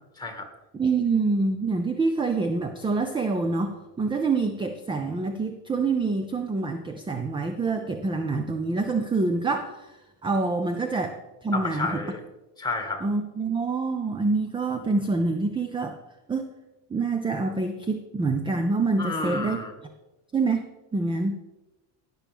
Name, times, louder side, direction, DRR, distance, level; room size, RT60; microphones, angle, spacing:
voice 1, 0.2-0.5 11.5-12.2 12.6-13.0 19.0-19.7, left 3 dB, 10° left, 4 dB, 1.9 m, -30 dB
voice 2, 0.7-12.0 13.0-16.0 16.3-16.5 16.9-19.6 20.3-20.7 20.9-21.3, right 3 dB, 10° right, 7 dB, 0.3 m, -26 dB
17.0 x 6.1 x 3.5 m, 1.1 s
supercardioid pair, 110°, 49 cm